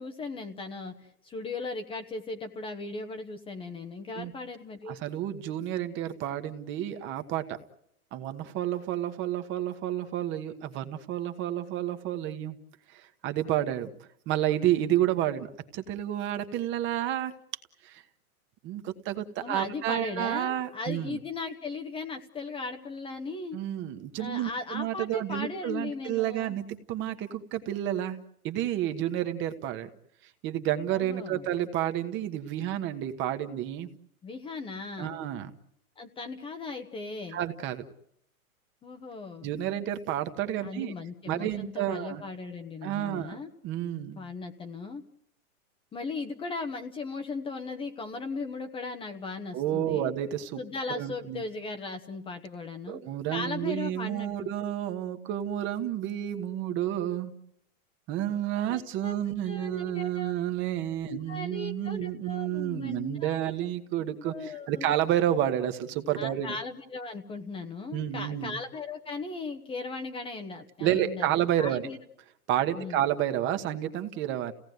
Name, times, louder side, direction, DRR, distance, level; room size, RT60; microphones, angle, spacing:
voice 1, 0.0-5.0 19.4-23.6 24.2-26.6 30.9-31.5 34.2-35.2 36.0-37.4 38.8-39.5 40.6-43.5 44.1-45.0 45.9-50.1 50.6-53.0 53.3-54.3 58.7-59.2 59.4-60.4 61.0-63.5 64.2-64.9 66.2-72.0 72.7-73.0, left 3 dB, 10° left, 6 dB, 1.1 m, -37 dB
voice 2, 4.9-7.6 8.1-12.6 12.9-13.9 14.3-17.3 17.8-18.0 18.6-21.2 23.5-28.2 28.4-29.9 30.4-33.9 35.0-35.5 37.3-37.8 39.4-40.9 41.3-42.2 42.8-43.4 43.6-44.2 49.5-50.6 50.9-51.4 52.9-57.3 58.1-66.6 67.9-68.6 70.8-71.9 72.5-74.5, right 12 dB, 25° right, 8 dB, 1.4 m, -30 dB
29.5 x 17.5 x 9.4 m, 0.75 s
hypercardioid pair, 155°, 43 cm